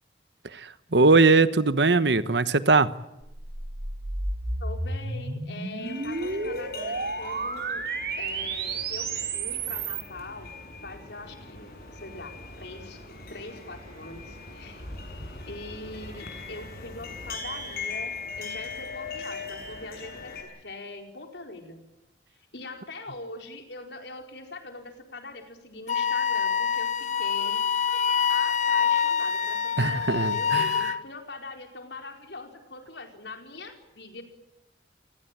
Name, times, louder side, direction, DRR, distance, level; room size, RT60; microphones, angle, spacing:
voice 1, 0.5-2.9 29.8-30.9, right 3 dB, 80° right, 14 dB, 1.2 m, -21 dB
sound 1, 3.2-10.1, right 3 dB, 60° right, 3.3 m, -32 dB
voice 2, 4.6-7.8 8.2-10.5 10.8-14.9 15.4-21.8 22.5-27.6 28.3-34.2, left 2 dB, 80° left, 4 dB, 4.6 m, -42 dB
sound 2, 5.8-20.4, left 4 dB, 55° left, 6.6 m, -40 dB
Wind instrument woodwind instrument, 25.9-31.0, left 7 dB, 40° left, 1.0 m, -25 dB
27.5 x 19.0 x 9.0 m, 0.93 s
head